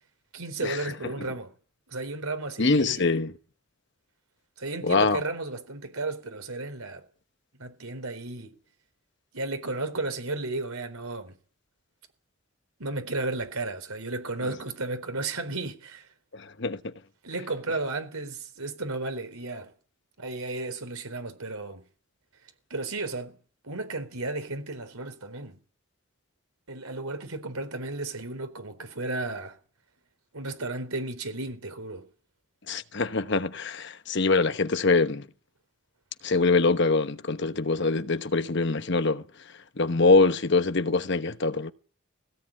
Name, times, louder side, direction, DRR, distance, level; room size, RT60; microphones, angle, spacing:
voice 1, 0.3-1.5 1.9-3.1 4.6-7.0 7.6-8.5 9.3-11.3 12.8-16.1 17.2-19.7 20.2-21.8 22.7-23.4 23.6-25.6 26.7-29.6 30.3-32.1, right 2 dB, 90° right, 4.1 m, -33 dB
voice 2, 2.6-3.3 4.8-5.2 16.3-16.9 32.7-35.3 36.2-39.2 39.8-41.7, left 3 dB, 55° left, 1.0 m, -24 dB
19.0 x 17.0 x 8.9 m
head